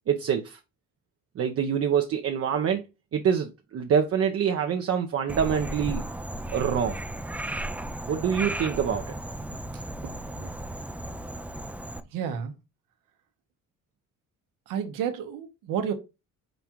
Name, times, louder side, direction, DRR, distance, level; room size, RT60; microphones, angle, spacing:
voice 1, 0.1-0.6 1.4-2.8 3.1-6.1 6.5-7.0 8.1-9.2, right 8 dB, 45° right, 0.6 m, -25 dB
Frog, 5.3-12.0, right 1 dB, 5° right, 0.4 m, -35 dB
voice 2, 12.1-12.5 14.7-15.9, right 8 dB, 90° right, 1.0 m, -31 dB
5.1 x 2.4 x 4.4 m
cardioid pair, 95°, 32 cm